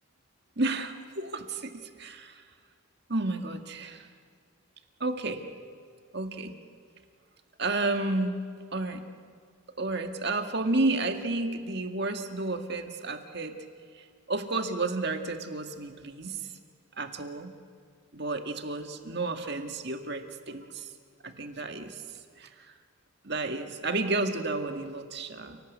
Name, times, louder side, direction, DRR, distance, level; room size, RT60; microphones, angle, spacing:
voice 1, 0.6-2.4 3.1-4.1 5.0-5.4 6.1-6.5 7.6-8.4 8.7-9.0 9.8-13.6 14.3-16.4 17.0-17.5 18.1-20.9 21.2-22.0 22.4-22.5 23.2-25.6, right 2 dB, 55° right, 6 dB, 1.9 m, -31 dB
29.5 x 18.5 x 8.5 m, 2.1 s
head